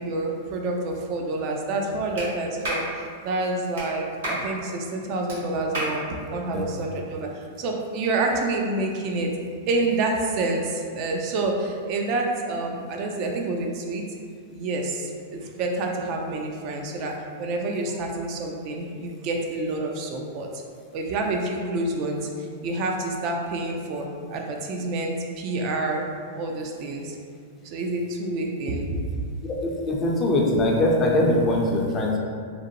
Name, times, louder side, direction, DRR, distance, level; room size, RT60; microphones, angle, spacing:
voice 1, 0.0-6.0 6.3-9.3 9.7-14.0 14.5-17.1 17.4-20.5 20.9-22.3 22.6-26.0 26.3-27.2 27.6-29.0, right 2 dB, 45° right, 1 dB, 0.3 m, -28 dB
Clapping, 2.2-2.3 2.6-2.9 3.8-3.9 4.2-4.4 5.3-5.4 5.7-6.0, right 1 dB, 80° right, 1.0 m, -29 dB
voice 2, 29.4-32.2, left 1 dB, 25° left, -1 dB, 0.4 m, -22 dB
2.6 x 2.1 x 2.8 m, 2.2 s
hypercardioid pair, 125°, 0 cm